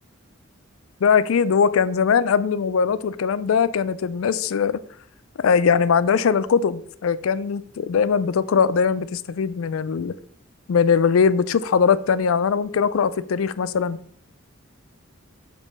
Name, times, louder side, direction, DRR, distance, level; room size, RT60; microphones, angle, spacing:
voice 1, 1.0-4.8 5.4-10.1 10.7-14.0, left 6 dB, 90° left, 0.4 m, -20 dB
7.1 x 3.0 x 5.3 m
head